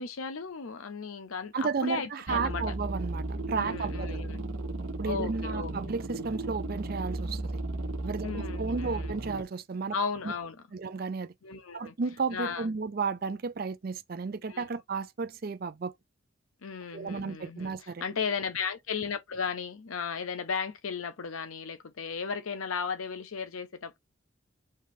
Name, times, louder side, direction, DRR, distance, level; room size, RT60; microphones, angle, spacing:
voice 1, 0.0-2.6 3.5-4.4 5.0-5.7 8.2-9.2 9.9-10.6 11.4-11.9 12.3-12.7 14.5-14.6 16.6-24.0, left 5 dB, 90° left, 0.7 m, -35 dB
voice 2, 1.5-4.2 5.0-7.6 8.0-9.9 10.7-11.3 11.7-15.9 16.9-18.0, right 4 dB, 45° right, 0.5 m, -33 dB
sound 1, 2.3-9.4, right 2 dB, 75° right, 0.9 m, -35 dB
4.9 x 3.3 x 2.7 m
head